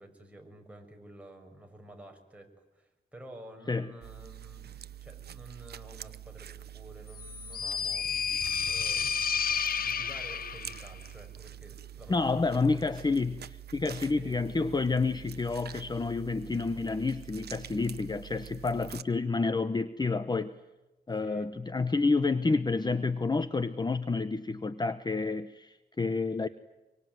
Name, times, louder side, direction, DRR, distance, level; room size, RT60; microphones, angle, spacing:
voice 1, 0.0-8.1 8.6-12.3 12.6-12.8 14.2-14.4 21.2-21.5, right 1 dB, 10° right, 2 dB, 6.4 m, -51 dB
sound 1, 4.0-19.0, right 10 dB, 90° right, 0.9 m, -46 dB
sound 2, 7.2-10.9, left 7 dB, 65° left, 0.8 m, -31 dB
voice 2, 12.1-20.5 21.1-26.5, left 3 dB, 25° left, 12 dB, 0.9 m, -29 dB
25.5 x 24.0 x 9.4 m, 1.0 s
wide cardioid pair, 125°, 16 cm